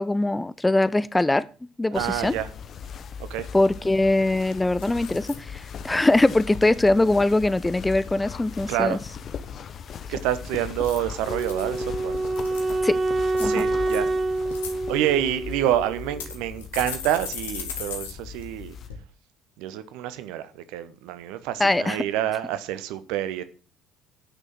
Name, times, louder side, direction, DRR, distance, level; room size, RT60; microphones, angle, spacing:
voice 1, 0.0-1.5 1.8-2.3 3.5-9.0 12.8-13.0 13.4-13.6 21.6-22.0, left 2 dB, 10° left, 0.6 m, -22 dB
sound 1, 1.9-18.9, left 7 dB, 45° left, 1.0 m, -39 dB
voice 2, 1.9-2.5 3.3-3.5 8.7-9.0 10.1-12.2 13.4-14.1 14.9-18.7 19.6-23.4, right 12 dB, 65° right, 1.0 m, -27 dB
sound 2, 4.0-4.3 4.8-5.4 5.8-6.2 10.7-11.7 12.2-12.8 13.3-14.0 14.4-14.7 15.5-15.6 16.2-18.1 18.4-18.5 18.9-19.0, left 7 dB, 75° left, 1.9 m, -37 dB
Wind instrument woodwind instrument, 11.2-16.3, right 2 dB, 30° right, 1.3 m, -27 dB
10.0 x 6.4 x 7.6 m
figure-of-eight pair, 55°, 0 cm